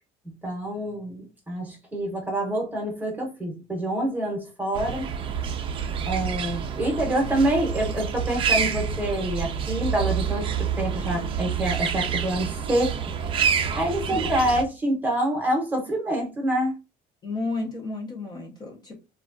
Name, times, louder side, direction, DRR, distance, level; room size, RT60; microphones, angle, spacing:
voice 1, 0.4-5.1 6.1-12.9 13.7-16.8, right 1 dB, 10° right, 0.9 m, -26 dB
sound 1, 4.7-14.6, right 7 dB, 35° right, 0.4 m, -28 dB
voice 2, 17.2-19.0, left 3 dB, 25° left, 0.6 m, -32 dB
3.2 x 2.3 x 2.5 m
cardioid pair, 155°, 16 cm